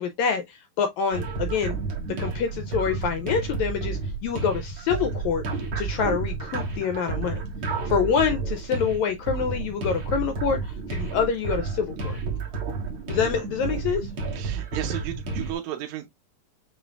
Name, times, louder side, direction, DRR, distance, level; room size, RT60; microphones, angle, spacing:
voice 1, 0.0-1.8 2.2-5.4 5.8-7.4 7.8-12.2 13.1-14.1, left 6 dB, 85° left, 1.7 m, -26 dB
sound 1, 1.1-15.5, right 4 dB, 45° right, 2.0 m, -31 dB
voice 2, 14.3-16.1, right 11 dB, 70° right, 1.9 m, -33 dB
7.3 x 3.1 x 2.3 m
omnidirectional pair, 3.8 m